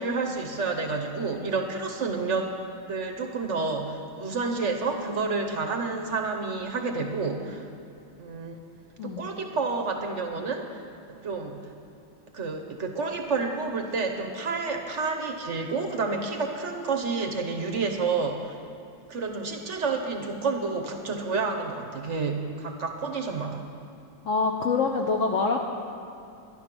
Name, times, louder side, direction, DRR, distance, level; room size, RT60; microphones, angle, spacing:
voice 1, 0.0-2.5 2.9-7.7 8.2-8.6 9.0-10.8 11.2-11.6 12.3-18.6 19.1-23.6, right 4 dB, 50° right, 3 dB, 0.9 m, -29 dB
voice 2, 24.2-25.6, left 4 dB, 70° left, 1 dB, 0.7 m, -25 dB
12.0 x 11.0 x 6.1 m, 2.6 s
omnidirectional pair, 2.2 m